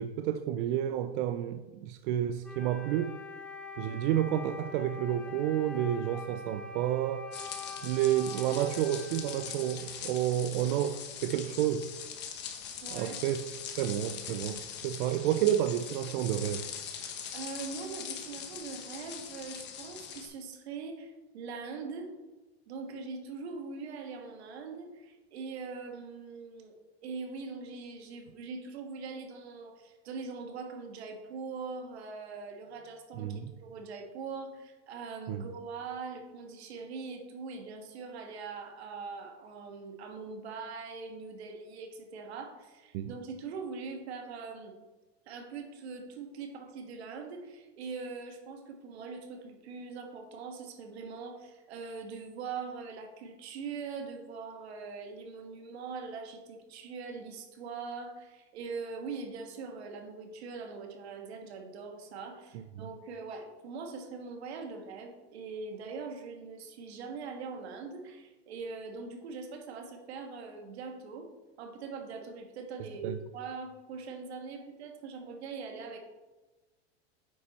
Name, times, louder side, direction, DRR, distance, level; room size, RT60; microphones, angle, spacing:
voice 1, 0.0-3.2 3.8-7.3 7.8-11.9 12.9-13.4 13.8-16.7 33.2-33.5 35.3-35.4 42.9-43.1 73.0-73.2, right 11 dB, 60° right, 0.5 m, -30 dB
Wind instrument woodwind instrument, 2.4-10.2, left 2 dB, 5° left, 0.3 m, -44 dB
sound 1, 7.3-20.3, left 8 dB, 35° left, 1.0 m, -42 dB
voice 2, 12.8-13.2 17.3-22.1 22.7-26.7 27.0-44.7 45.3-71.3 71.6-76.0, right 4 dB, 85° right, 1.6 m, -42 dB
9.1 x 4.4 x 4.1 m
supercardioid pair, 135°, 32 cm